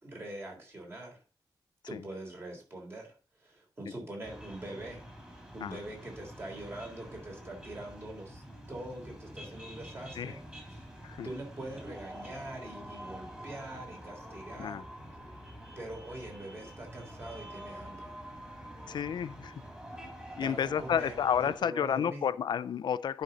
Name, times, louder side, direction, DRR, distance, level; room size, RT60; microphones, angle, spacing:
voice 1, 0.0-1.2 1.9-5.0 5.5-10.9 11.2-14.8 15.7-18.1 20.3-22.3, right 1 dB, 30° right, 3.4 m, -43 dB
sound 1, 4.2-21.6, equal, 10° right, 3.0 m, -47 dB
voice 2, 18.9-19.5 20.4-23.2, left 8 dB, 70° left, 0.4 m, -31 dB
10.5 x 5.3 x 3.9 m
wide cardioid pair, 125°, 8 cm